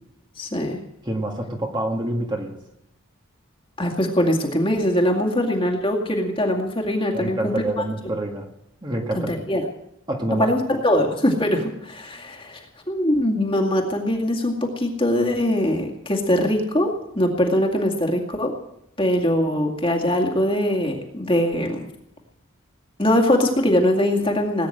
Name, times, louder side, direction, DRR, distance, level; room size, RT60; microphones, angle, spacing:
voice 1, 0.4-0.8 3.8-7.5 9.1-9.6 10.4-12.6 12.9-18.5 19.0-21.9 23.0-24.7, left 1 dB, 25° left, 1 dB, 2.1 m, -22 dB
voice 2, 1.1-2.5 7.1-8.5 8.8-9.4 10.1-10.5, right 1 dB, 20° right, 2 dB, 1.8 m, -27 dB
19.0 x 9.6 x 7.8 m, 0.81 s
head